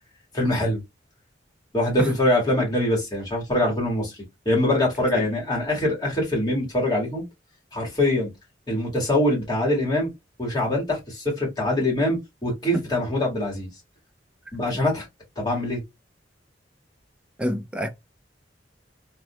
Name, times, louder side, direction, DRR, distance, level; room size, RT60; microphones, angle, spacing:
voice 1, 0.3-0.8 1.7-4.1 4.5-7.2 7.7-8.3 8.7-10.1 10.4-13.7 14.5-15.1 15.4-15.8, left 1 dB, 25° left, 1.7 m, -23 dB
voice 2, 17.4-17.9, equal, 5° right, 0.3 m, -27 dB
3.6 x 2.6 x 2.2 m
head